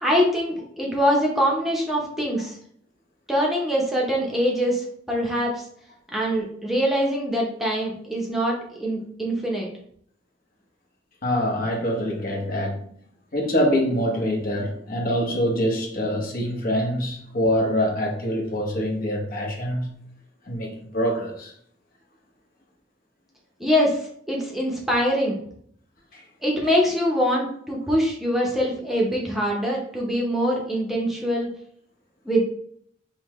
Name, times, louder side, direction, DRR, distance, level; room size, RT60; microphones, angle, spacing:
voice 1, 0.0-2.6 3.3-5.6 6.1-9.7 23.6-24.0 24.3-25.4 26.4-31.5 32.2-32.4, equal, ahead, 0.7 m, -23 dB
voice 2, 11.2-12.9 13.3-19.9 20.4-21.5 26.1-26.2, equal, 50° left, 1.0 m, -25 dB
5.4 x 2.2 x 3.1 m
head